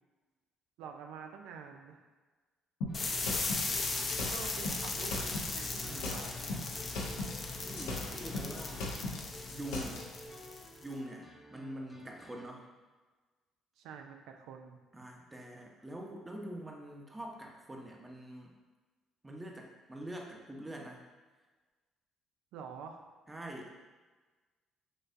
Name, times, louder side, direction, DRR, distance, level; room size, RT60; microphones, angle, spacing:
voice 1, 0.8-2.1 3.7-3.9 4.3-6.3 13.8-14.8 22.5-23.1, right 6 dB, 80° right, 4 dB, 0.4 m, -47 dB
sound 1, 2.8-5.5 5.8-7.4 7.6-10.0, left 2 dB, 85° left, 0.7 m, -38 dB
sound 2, 2.9-10.8, left 3 dB, 45° left, 0.6 m, -37 dB
sound 3, 2.9-12.5, equal, 15° left, 0.9 m, -53 dB
voice 2, 5.8-6.1 7.6-8.9 9.5-10.1 10.8-12.7 14.9-18.5 19.2-21.0 23.3-23.7, right 1 dB, 20° right, 0 dB, 0.9 m, -45 dB
6.3 x 2.6 x 2.6 m, 1.3 s
supercardioid pair, 65°, 0 cm